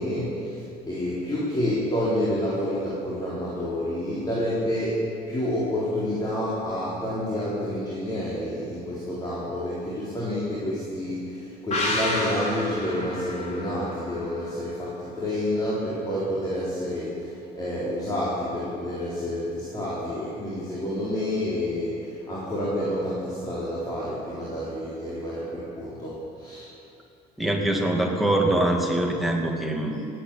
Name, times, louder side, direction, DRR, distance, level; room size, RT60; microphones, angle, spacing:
voice 1, 0.0-26.7, left 1 dB, 25° left, -8 dB, 4.2 m, -29 dB
sound 1, 11.7-15.2 15.5-15.6, left 1 dB, 45° left, 4.1 m, -31 dB
voice 2, 27.4-30.1, right 1 dB, ahead, 0 dB, 2.2 m, -24 dB
17.5 x 9.0 x 8.7 m, 2.5 s
cardioid pair, 110°, 17 cm